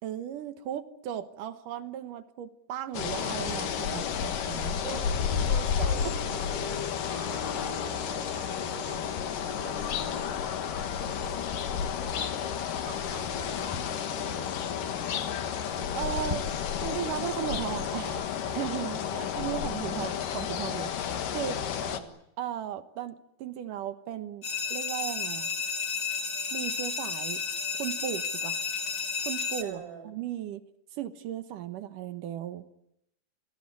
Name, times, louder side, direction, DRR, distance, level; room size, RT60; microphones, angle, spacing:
voice 1, 0.0-4.8 5.8-6.5 15.9-16.5 16.8-20.9 21.3-21.6 22.4-25.5 26.5-27.4 27.7-28.6 29.3-30.6 31.0-32.7, right 11 dB, 70° right, 9 dB, 2.1 m, -36 dB
sound 1, 2.9-22.0, left 8 dB, 60° left, 2.7 m, -31 dB
voice 2, 5.5-11.4 12.8-14.4 21.8-22.2 29.6-30.1, right 7 dB, 40° right, 4 dB, 8.0 m, -45 dB
sound 2, 24.4-29.6, left 5 dB, 40° left, 2.0 m, -32 dB
28.5 x 20.0 x 9.7 m, 0.80 s
omnidirectional pair, 5.2 m